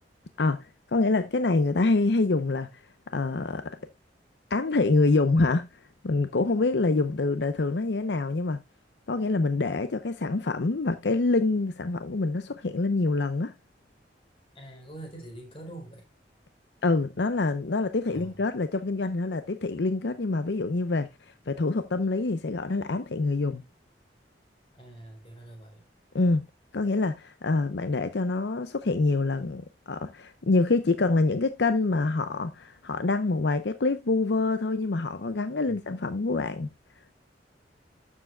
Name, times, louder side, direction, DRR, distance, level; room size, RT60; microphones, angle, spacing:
voice 1, 0.4-2.7 3.1-3.8 4.5-5.7 6.0-8.6 9.1-13.5 16.8-21.1 21.5-23.6 26.1-26.4 26.7-36.7, left 3 dB, 70° left, 0.7 m, -26 dB
voice 2, 14.5-16.0 18.1-18.4 24.7-25.8 35.7-35.8, right 1 dB, 30° left, 4.1 m, -44 dB
12.0 x 7.4 x 2.2 m
head